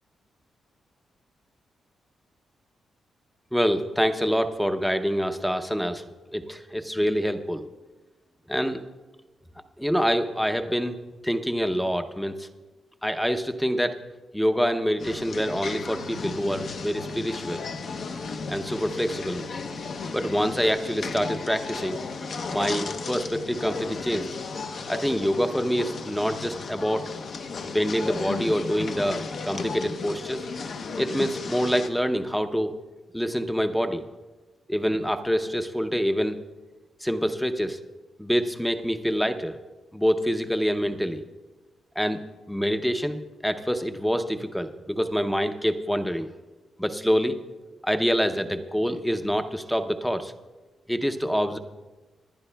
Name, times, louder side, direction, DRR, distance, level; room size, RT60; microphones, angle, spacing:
voice 1, 3.5-6.0 6.3-7.6 8.5-8.8 9.8-11.0 11.2-12.5 13.0-14.0 14.3-17.6 18.5-19.4 20.1-22.0 22.5-24.3 24.9-27.1 27.6-30.5 31.0-32.7 33.1-34.0 34.7-36.4 37.0-37.8 38.2-39.6 39.9-41.2 42.0-42.2 42.5-46.3 46.8-47.4 47.8-50.3 50.9-51.6, equal, ahead, 8 dB, 0.6 m, -26 dB
sound 1, 15.0-31.9, left 4 dB, 50° left, 0.6 m, -34 dB
25.5 x 11.5 x 2.2 m, 1.2 s
wide cardioid pair, 165°, 0 cm